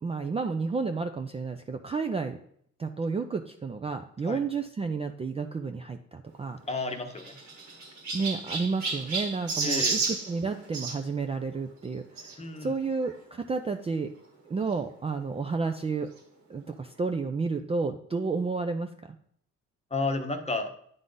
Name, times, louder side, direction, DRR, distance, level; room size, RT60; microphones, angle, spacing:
voice 1, 0.0-2.4 2.8-6.6 8.1-14.1 14.5-16.1 16.5-19.2, right 4 dB, 20° right, 6 dB, 0.4 m, -31 dB
voice 2, 6.7-7.4 9.6-10.0 12.4-12.7 19.9-20.7, left 3 dB, 20° left, 5 dB, 0.9 m, -31 dB
Chirp tweet, 6.7-11.0 12.2-12.3 13.0-13.1 13.4-13.5 14.7-14.8, right 4 dB, 65° right, 1.5 m, -32 dB
9.3 x 3.8 x 3.8 m, 0.65 s
cardioid pair, 90°, 30 cm